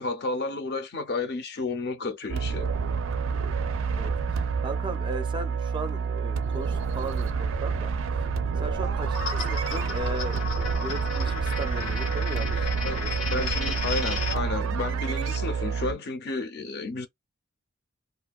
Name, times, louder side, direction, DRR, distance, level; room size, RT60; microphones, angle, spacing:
voice 1, 0.0-2.7 12.8-17.1, left 3 dB, 50° left, 0.6 m, -32 dB
sound 1, 2.3-15.9, right 5 dB, 85° right, 0.4 m, -28 dB
voice 2, 4.0-7.9 8.6-13.7 14.2-14.3, right 1 dB, 25° right, 0.4 m, -37 dB
sound 2, 9.1-14.3, left 4 dB, 85° left, 0.9 m, -34 dB
2.4 x 2.2 x 2.3 m
head